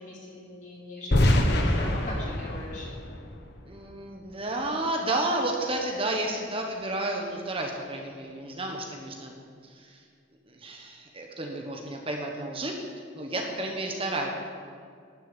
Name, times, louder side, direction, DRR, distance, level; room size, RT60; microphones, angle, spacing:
voice 1, 0.0-2.9, left 1 dB, 40° left, -4 dB, 4.1 m, -40 dB
sound 1, 1.1-4.1, left 1 dB, 60° left, 1.4 m, -25 dB
voice 2, 3.7-9.3 9.6-10.0 10.5-12.8 13.1-14.3, right 2 dB, 30° right, 1 dB, 1.3 m, -31 dB
12.5 x 7.5 x 9.2 m, 2.2 s
head